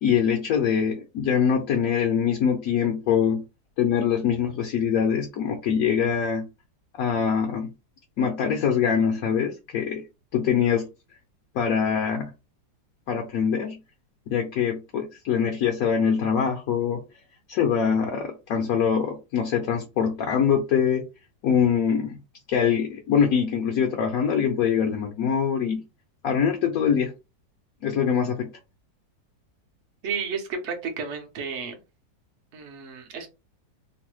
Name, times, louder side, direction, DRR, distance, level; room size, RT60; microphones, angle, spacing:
voice 1, 0.0-3.4 3.8-6.5 7.0-7.7 8.2-10.0 10.3-10.9 11.5-12.3 13.1-13.8 14.3-17.0 17.5-21.0 21.4-22.2 22.5-25.8 26.2-27.1 27.8-28.5, left 7 dB, 70° left, 0.8 m, -23 dB
voice 2, 30.0-31.8 32.5-33.3, right 5 dB, 60° right, 0.7 m, -32 dB
3.1 x 2.1 x 3.0 m
omnidirectional pair, 2.0 m